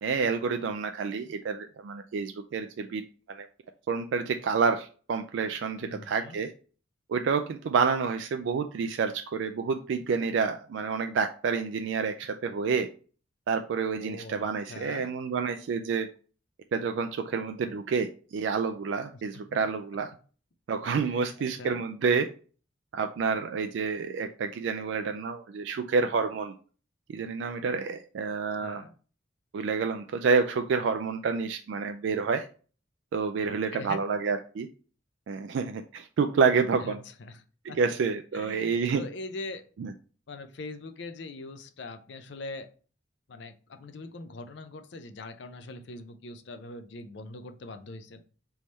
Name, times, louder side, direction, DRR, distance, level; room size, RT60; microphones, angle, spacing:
voice 1, 0.0-3.0 3.3-3.5 3.9-6.5 7.1-12.9 13.5-16.1 16.7-20.1 20.7-22.3 22.9-26.5 27.1-28.8 29.5-32.5 33.1-34.7 35.3-37.0 37.6-39.0 39.8-39.9, right 5 dB, 70° right, 7 dB, 0.3 m, -28 dB
voice 2, 5.8-6.4 13.9-15.1 19.1-19.4 21.0-21.2 21.6-21.8 28.6-28.9 33.5-34.0 36.8-37.8 38.3-39.6 40.3-42.7 43.3-48.2, left 2 dB, 60° left, 10 dB, 0.5 m, -42 dB
3.5 x 3.1 x 4.0 m, 0.39 s
head